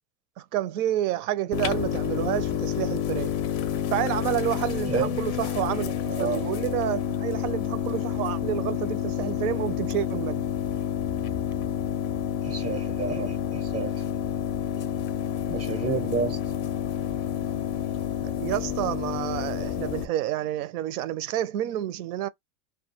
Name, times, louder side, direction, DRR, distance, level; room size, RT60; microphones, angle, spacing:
voice 1, 0.4-3.3 3.9-10.4 18.2-22.3, right 12 dB, 85° right, 0.5 m, -29 dB
sound 1, 1.5-20.1, left 9 dB, 40° left, 0.4 m, -29 dB
voice 2, 4.9-5.2 6.1-6.4 12.4-14.0 14.8-14.9 15.5-16.5, right 4 dB, 15° right, 0.4 m, -30 dB
2.3 x 2.3 x 2.7 m
supercardioid pair, 130°, 43 cm